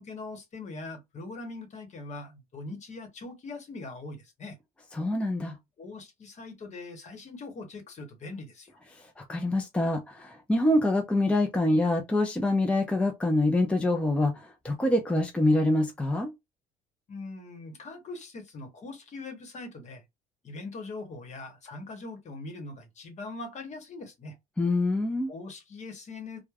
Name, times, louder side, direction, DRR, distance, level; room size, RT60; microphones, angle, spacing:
voice 1, 0.0-4.6 5.8-8.7 17.1-20.0 20.4-24.3 25.3-26.4, left 3 dB, 45° left, 1.1 m, -41 dB
voice 2, 4.9-5.5 9.2-16.3 24.6-25.3, left 1 dB, 5° left, 0.5 m, -25 dB
3.1 x 2.2 x 2.3 m
cardioid pair, 110°, 17 cm